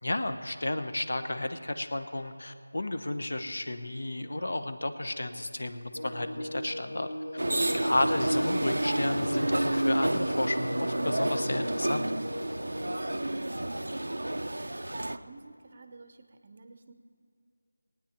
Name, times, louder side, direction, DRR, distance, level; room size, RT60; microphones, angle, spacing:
voice 1, 0.0-7.1 7.7-12.1, left 1 dB, 65° left, 9 dB, 0.9 m, -32 dB
sound 1, 5.9-13.2, equal, 90° left, 2.1 m, -39 dB
sound 2, 7.4-15.2, right 1 dB, 85° right, 0.6 m, -30 dB
voice 2, 7.5-7.8 12.6-16.9, right 3 dB, 30° right, 8 dB, 0.7 m, -51 dB
19.5 x 9.3 x 4.4 m, 2.5 s
figure-of-eight pair, 175°, 0 cm